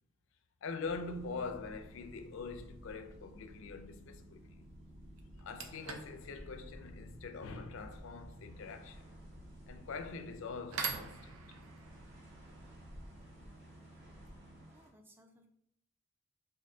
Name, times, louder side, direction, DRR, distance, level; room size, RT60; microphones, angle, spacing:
voice 1, 0.6-4.7 5.4-9.2 9.7-11.6, left 4 dB, 65° left, 0.4 m, -44 dB
Boat Water vehicle, 0.8-14.6, equal, 40° right, 1.3 m, -54 dB
sound 1, 0.8-14.9, right 1 dB, 60° right, 1.3 m, -66 dB
sound 2, 2.3-2.5 4.6-4.7 5.2-13.9, right 5 dB, 80° right, 0.5 m, -47 dB
voice 2, 14.7-15.5, equal, 10° right, 0.3 m, -63 dB
3.6 x 2.6 x 3.5 m
head